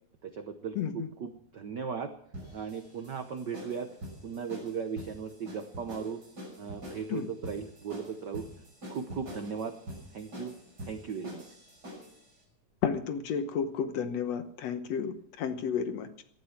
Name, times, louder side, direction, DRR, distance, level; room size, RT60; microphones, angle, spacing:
voice 1, 0.2-2.1 2.5-3.9 4.2-6.2 6.6-8.5 8.9-9.7 10.1-10.5 10.9-11.4, right 6 dB, 85° right, 8 dB, 0.9 m, -37 dB
voice 2, 0.8-1.1 7.1-7.3 12.8-16.2, left 7 dB, 65° left, 9 dB, 2.1 m, -32 dB
sound 1, 2.3-12.2, equal, 30° right, 6.7 m, -45 dB
18.0 x 12.0 x 5.9 m, 0.67 s
omnidirectional pair, 3.3 m